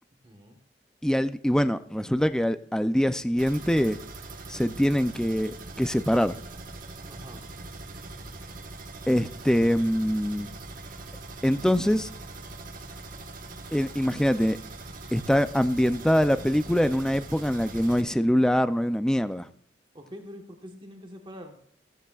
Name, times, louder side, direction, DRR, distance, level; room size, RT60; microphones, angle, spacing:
voice 1, 0.2-0.6 7.1-7.4 19.9-21.6, equal, 25° right, 4 dB, 1.2 m, -44 dB
voice 2, 1.0-4.0 4.5-6.3 9.1-10.5 11.4-12.1 13.7-14.6 15.1-19.5, equal, 5° left, 11 dB, 0.4 m, -24 dB
sound 1, 3.4-18.0, right 2 dB, 50° right, 1.2 m, -42 dB
15.0 x 14.5 x 2.4 m, 0.65 s
head